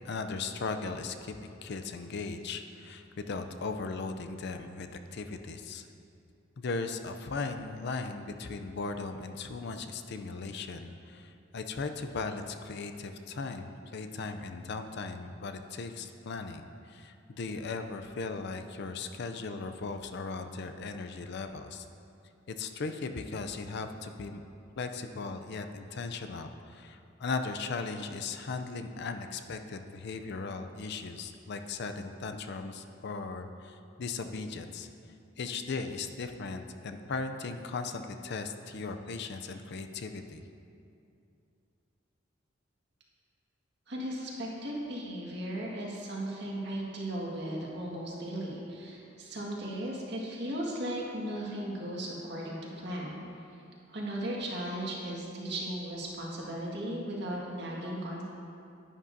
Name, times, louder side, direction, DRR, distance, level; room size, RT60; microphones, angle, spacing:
voice 1, 0.0-5.8 6.6-21.9 22.5-24.4 24.8-34.9 35.4-40.4, left 4 dB, 60° left, 7 dB, 0.5 m, -37 dB
voice 2, 43.9-53.2 53.9-58.2, right 1 dB, 60° right, -4 dB, 1.8 m, -36 dB
10.5 x 10.0 x 2.7 m, 2.6 s
head